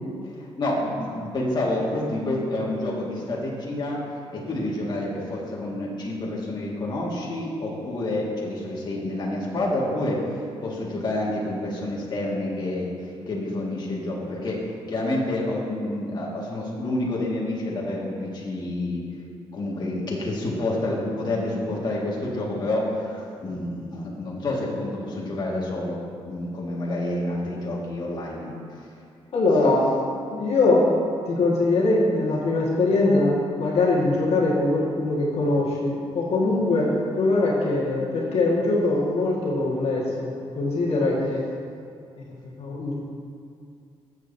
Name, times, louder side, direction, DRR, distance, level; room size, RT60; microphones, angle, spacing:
voice 1, 0.3-4.0 4.3-10.2 10.6-12.9 13.3-19.0 19.5-26.0 26.3-28.9, left 1 dB, 40° left, -4 dB, 1.9 m, -28 dB
voice 2, 29.3-29.9 30.3-41.4 42.3-42.9, left 2 dB, 65° left, -5 dB, 1.7 m, -22 dB
14.5 x 7.3 x 2.7 m, 2.4 s
cardioid pair, 100°, 11 cm